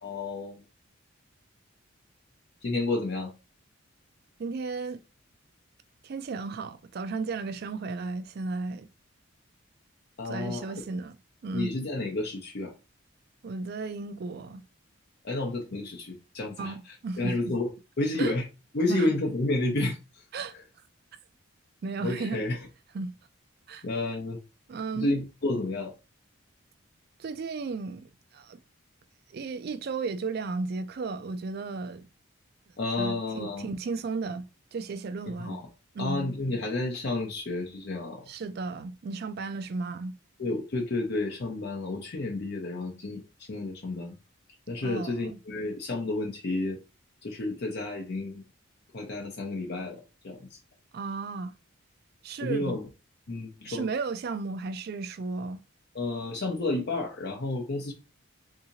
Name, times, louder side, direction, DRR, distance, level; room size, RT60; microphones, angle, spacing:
voice 1, 0.0-0.6 2.6-3.3 10.2-10.6 11.5-12.7 15.2-17.7 18.0-18.5 18.7-20.0 22.0-22.6 23.8-24.4 24.9-25.9 32.8-33.7 35.4-35.7 36.0-38.2 40.4-43.2 43.5-44.1 44.7-46.8 47.2-48.4 48.9-50.6 52.4-52.9 53.3-53.8 55.9-57.9, left 2 dB, 50° left, 0.6 m, -31 dB
voice 2, 4.4-5.0 6.0-8.9 10.2-11.2 11.4-11.8 13.4-14.6 16.6-17.5 18.2-18.3 18.8-19.1 20.3-20.5 21.8-22.4 22.9-23.2 23.7-23.8 24.7-25.1 27.2-28.6 29.3-32.1 33.0-35.6 35.9-36.3 38.3-40.2 44.8-45.4 50.9-51.5 52.2-52.8 53.7-55.6, right 4 dB, 45° right, 0.3 m, -34 dB
3.6 x 2.7 x 2.8 m
head